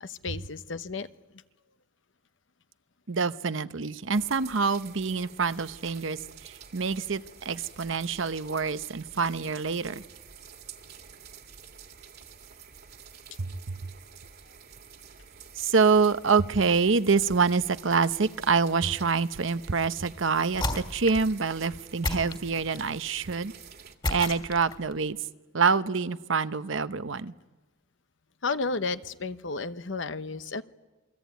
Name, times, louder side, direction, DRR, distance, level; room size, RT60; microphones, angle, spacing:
voice 1, 0.0-1.1 28.4-30.6, left 4 dB, 65° left, 12 dB, 1.0 m, -32 dB
voice 2, 3.1-10.0 15.6-23.5 24.1-25.2 25.5-27.3, right 5 dB, 70° right, 13 dB, 0.8 m, -26 dB
sound 1, 4.1-23.9, right 6 dB, 55° right, 2.0 m, -49 dB
sound 2, 20.5-21.3 22.0-23.0 24.0-24.9, left 1 dB, 25° left, 2.6 m, -32 dB
28.0 x 22.5 x 9.3 m, 1.2 s
head